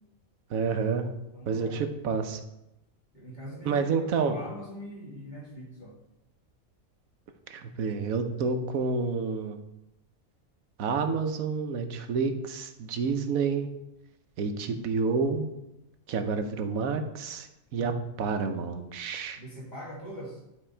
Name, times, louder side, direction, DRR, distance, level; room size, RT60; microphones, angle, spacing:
voice 1, 0.5-1.1 1.5-2.4 3.6-4.4 7.5-9.6 10.8-13.7 14.4-15.5 16.1-17.9 18.2-19.4, right 5 dB, 85° right, 7 dB, 1.2 m, -29 dB
voice 2, 1.2-1.8 3.1-5.9 19.3-20.4, equal, 30° left, -5 dB, 2.6 m, -42 dB
11.0 x 4.2 x 4.4 m, 0.91 s
omnidirectional pair, 1.4 m